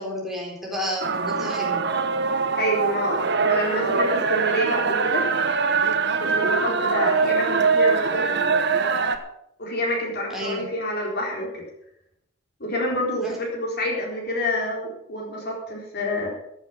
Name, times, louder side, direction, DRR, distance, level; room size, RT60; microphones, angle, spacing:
voice 1, 0.0-1.8 10.3-10.6 13.2-13.4, left 1 dB, ahead, -3 dB, 4.1 m, -31 dB
sound 1, 1.0-9.2, right 4 dB, 55° right, 1.2 m, -23 dB
voice 2, 2.6-5.3 6.2-8.4 9.6-11.6 12.6-16.3, left 1 dB, 50° left, -1 dB, 4.0 m, -28 dB
15.0 x 8.1 x 7.1 m, 0.76 s
head